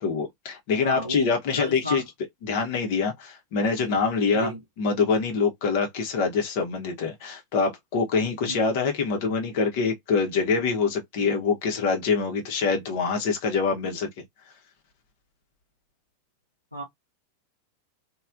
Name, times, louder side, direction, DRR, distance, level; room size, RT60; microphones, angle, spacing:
voice 1, 0.0-2.0 2.4-4.5 4.8-14.1, left 5 dB, 50° left, 0.8 m, -25 dB
voice 2, 0.8-2.0 3.8-4.0 4.3-4.6 8.4-8.7 16.7-16.8, left 1 dB, 90° left, 0.8 m, -33 dB
3.2 x 2.3 x 2.5 m
figure-of-eight pair, 90°, 0 cm